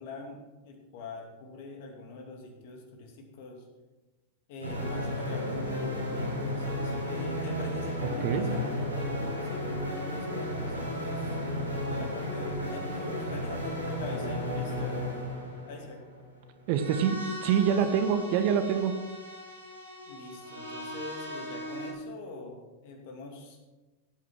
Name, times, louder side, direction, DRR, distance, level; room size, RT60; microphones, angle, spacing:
voice 1, 0.0-3.7 4.5-11.3 11.9-15.1 15.7-16.0 20.1-23.6, left 3 dB, 50° left, 2 dB, 2.6 m, -44 dB
sound 1, 4.6-21.9, left 1 dB, 80° right, 5.3 m, -34 dB
voice 2, 8.0-8.5 16.7-18.9, right 8 dB, 45° right, 8 dB, 1.3 m, -26 dB
16.5 x 9.1 x 4.7 m, 1.2 s
figure-of-eight pair, 90°, 0 cm